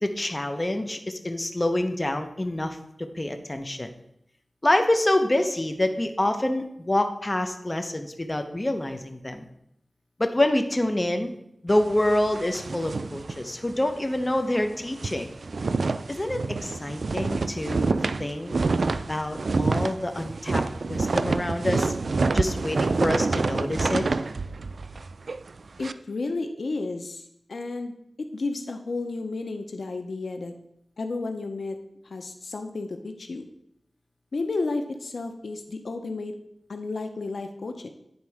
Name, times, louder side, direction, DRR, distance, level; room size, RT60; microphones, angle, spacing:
voice 1, 0.0-2.8 3.1-3.9 4.6-9.4 10.2-11.3 11.6-15.3 16.1-17.9 18.2-18.5 19.1-20.6 20.9-21.9 22.3-24.1, left 1 dB, 25° left, 6 dB, 0.8 m, -26 dB
sound 1, 11.7-14.0 14.3-14.4 14.7-25.9, right 3 dB, 75° right, 0.3 m, -27 dB
voice 2, 25.8-28.0 28.3-30.5 31.0-31.8 32.0-33.4 34.3-36.3 36.7-37.9, left 3 dB, 80° left, 6 dB, 0.6 m, -32 dB
9.5 x 4.1 x 4.8 m, 0.77 s
wide cardioid pair, 60°, 0 cm